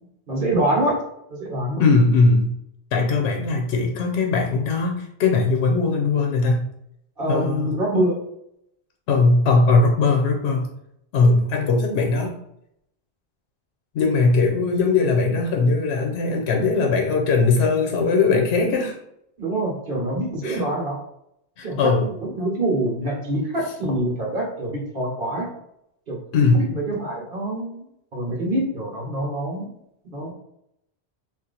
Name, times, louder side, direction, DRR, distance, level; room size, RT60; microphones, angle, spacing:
voice 1, 0.3-1.0 1.3-1.8 7.2-8.2 19.4-20.9 21.6-21.9 22.2-25.5 26.1-26.2 26.5-27.8 28.1-29.7 30.1-30.3, right 1 dB, 55° right, -2 dB, 1.1 m, -25 dB
voice 2, 1.8-2.5 2.9-6.6 7.3-7.8 9.1-10.7 11.1-12.4 13.9-19.0 20.4-20.6 21.6-22.1 26.3-26.7, left 3 dB, 80° left, 2 dB, 0.8 m, -19 dB
2.8 x 2.4 x 3.8 m, 0.76 s
omnidirectional pair, 1.1 m